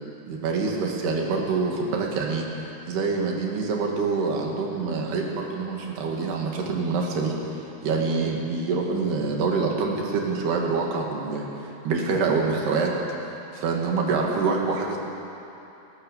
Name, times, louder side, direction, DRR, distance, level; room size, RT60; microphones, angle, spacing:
voice 1, 0.3-7.4 7.8-12.9 13.5-15.0, right 4 dB, 70° right, 0 dB, 4.4 m, -26 dB
29.5 x 14.0 x 7.3 m, 2.9 s
omnidirectional pair, 4.8 m